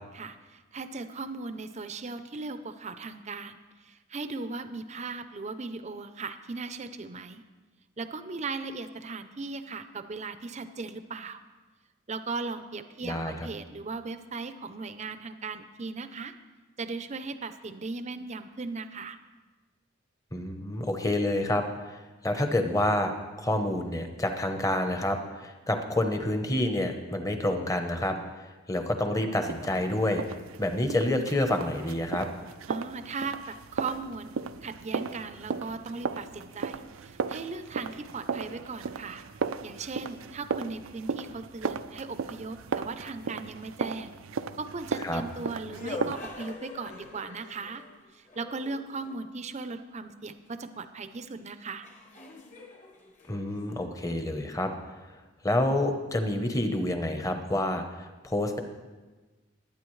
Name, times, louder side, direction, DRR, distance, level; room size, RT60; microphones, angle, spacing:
voice 1, 0.1-7.4 8.0-11.4 12.1-16.3 16.8-19.2 32.7-39.2 39.6-44.2 44.6-47.8 48.1-51.9, right 4 dB, 35° right, 10 dB, 0.6 m, -38 dB
voice 2, 13.0-13.3 20.3-28.2 28.7-30.2 30.6-32.3 45.0-45.2 53.3-54.7 55.4-58.6, left 1 dB, 15° left, 6 dB, 0.9 m, -28 dB
sound 1, 29.5-46.2, right 5 dB, 90° right, 0.5 m, -36 dB
sound 2, 45.1-49.3 51.1-51.2 51.8-54.3, left 3 dB, 35° left, 1.2 m, -44 dB
20.5 x 9.2 x 3.2 m, 1.3 s
head